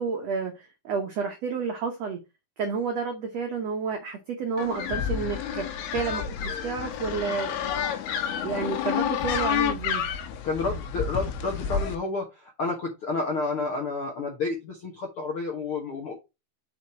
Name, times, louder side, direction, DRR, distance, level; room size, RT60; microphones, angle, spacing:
voice 1, 0.0-2.2 2.6-7.7 8.4-10.1, right 5 dB, 85° right, 1.4 m, -30 dB
sound 1, 4.6-12.0, left 8 dB, 90° left, 3.0 m, -29 dB
voice 2, 10.4-16.1, left 3 dB, 70° left, 1.3 m, -30 dB
5.7 x 5.1 x 4.4 m
omnidirectional pair, 4.5 m